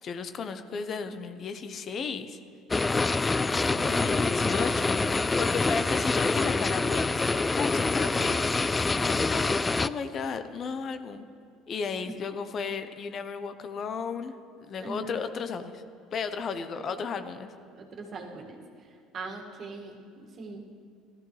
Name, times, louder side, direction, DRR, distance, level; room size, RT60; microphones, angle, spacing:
voice 1, 0.0-2.4 3.6-8.5 8.9-11.3 11.7-15.8 16.1-17.5, left 5 dB, 45° left, 9 dB, 0.8 m, -34 dB
sound 1, 2.7-9.9, left 3 dB, 20° left, 0.3 m, -26 dB
voice 2, 3.7-4.3 12.4-12.5 14.8-15.2 17.8-18.6 19.1-20.6, right 3 dB, 50° right, 1 dB, 1.9 m, -40 dB
16.0 x 13.5 x 3.2 m, 2.3 s
hypercardioid pair, 70°, 0 cm